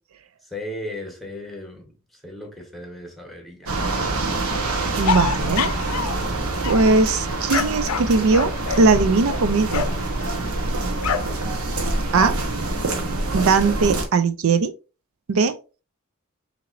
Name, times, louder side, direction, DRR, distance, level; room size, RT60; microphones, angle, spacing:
voice 1, 0.4-3.7, left 1 dB, ahead, 1.2 m, -36 dB
sound 1, 3.7-14.0, right 2 dB, 90° right, 1.1 m, -26 dB
voice 2, 5.0-5.7 6.0-6.1 6.6-8.5 8.8-9.9 12.1-12.3 13.3-14.7 15.3-15.5, right 4 dB, 70° right, 0.4 m, -19 dB
sound 2, 5.1-6.3 6.6-10.1 11.0-11.4 11.7-12.3, left 6 dB, 80° left, 0.5 m, -27 dB
5.8 x 2.9 x 2.5 m
head